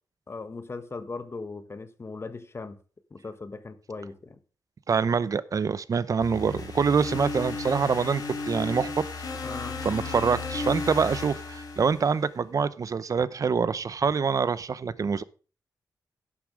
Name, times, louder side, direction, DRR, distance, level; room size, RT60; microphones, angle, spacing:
voice 1, 0.3-2.8 3.1-4.4 9.4-9.8, left 3 dB, 35° left, 1.2 m, -38 dB
voice 2, 4.9-9.0 9.8-15.2, right 5 dB, 50° right, 0.7 m, -25 dB
sound 1, 6.2-12.4, left 3 dB, 60° left, 3.6 m, -34 dB
11.5 x 7.1 x 4.9 m
wide cardioid pair, 105°, 7 cm